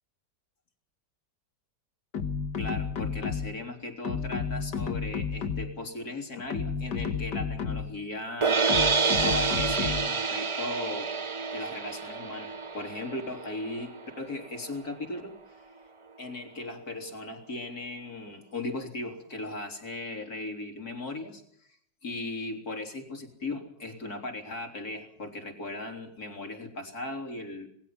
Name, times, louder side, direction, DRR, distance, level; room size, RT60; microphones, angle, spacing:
sound 1, 2.1-3.7 4.1-5.9 6.4-8.0 8.7-10.2, left 6 dB, 90° left, 2.1 m, -32 dB
voice 1, 2.6-8.7 9.2-11.2 11.5-13.9 14.2-15.7 16.2-21.4 22.0-27.7, left 2 dB, 60° left, 3 dB, 4.3 m, -37 dB
sound 2, 8.4-14.6, right 4 dB, 30° right, 0.5 m, -28 dB
27.0 x 20.5 x 5.9 m, 0.70 s
omnidirectional pair, 1.8 m